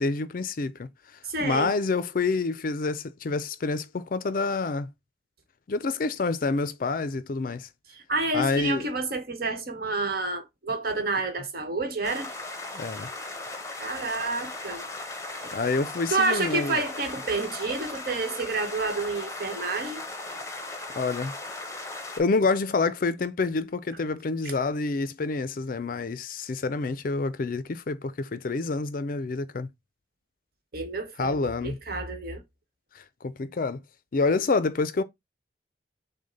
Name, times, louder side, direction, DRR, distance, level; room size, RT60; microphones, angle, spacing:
voice 1, 0.0-4.9 5.7-7.7 8.3-8.9 12.7-13.1 15.5-16.8 21.0-21.3 22.2-29.7 31.2-31.8 32.9-33.8 34.1-35.0, left 3 dB, 50° left, 0.4 m, -28 dB
voice 2, 1.2-1.7 8.1-12.3 13.8-14.8 15.4-15.5 16.1-20.0 24.4-24.5 30.7-32.4, right 3 dB, 55° right, 1.2 m, -29 dB
sound 1, 12.0-22.2, left 2 dB, 15° left, 0.8 m, -37 dB
6.3 x 2.2 x 3.9 m
head